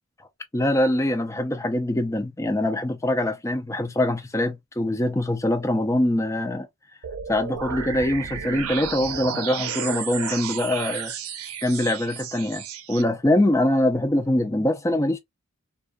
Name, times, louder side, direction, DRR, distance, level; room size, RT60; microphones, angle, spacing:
voice 1, 0.5-6.7 7.3-11.1 11.6-15.2, left 1 dB, 15° left, 0.4 m, -23 dB
sound 1, 7.0-13.0, right 7 dB, 80° right, 0.5 m, -32 dB
2.2 x 2.2 x 2.5 m
head